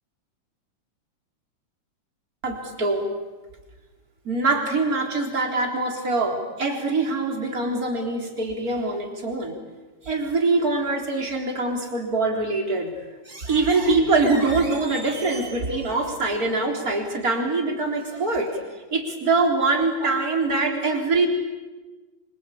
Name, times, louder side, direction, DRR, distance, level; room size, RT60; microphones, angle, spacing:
voice 1, 2.4-3.0 4.2-9.5 10.0-12.9 13.3-18.6 18.9-21.3, right 3 dB, 30° right, 2 dB, 4.2 m, -23 dB
26.5 x 25.0 x 8.6 m, 1.2 s
omnidirectional pair, 3.4 m